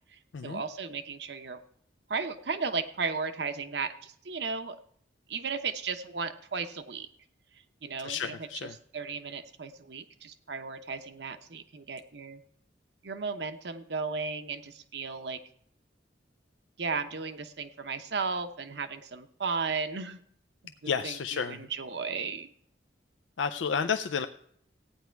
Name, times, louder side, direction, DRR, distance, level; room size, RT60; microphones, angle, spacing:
voice 1, 0.1-1.6 2.1-4.8 5.3-7.1 7.8-12.4 13.0-15.4 16.8-20.2 20.6-22.5, right 4 dB, 65° right, 9 dB, 0.9 m, -35 dB
voice 2, 8.0-8.7 20.9-21.7 23.4-24.3, left 6 dB, 85° left, 8 dB, 0.5 m, -31 dB
14.5 x 9.5 x 4.6 m, 0.67 s
head